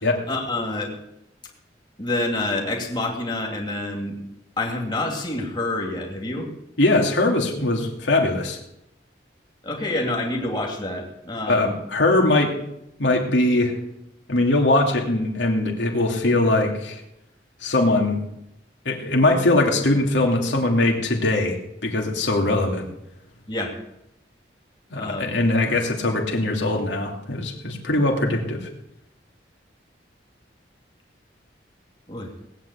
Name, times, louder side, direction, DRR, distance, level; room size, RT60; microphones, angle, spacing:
voice 1, 0.2-0.9 2.0-4.2 4.6-6.5 9.6-11.8 23.5-23.8 24.9-25.3 32.1-32.3, left 2 dB, 25° left, 0 dB, 2.5 m, -27 dB
voice 2, 6.8-8.6 11.5-12.5 13.0-13.8 14.3-17.0 17.6-18.2 18.8-22.9 24.9-28.7, left 2 dB, 80° left, 1 dB, 2.8 m, -21 dB
19.0 x 8.4 x 8.4 m, 0.83 s
head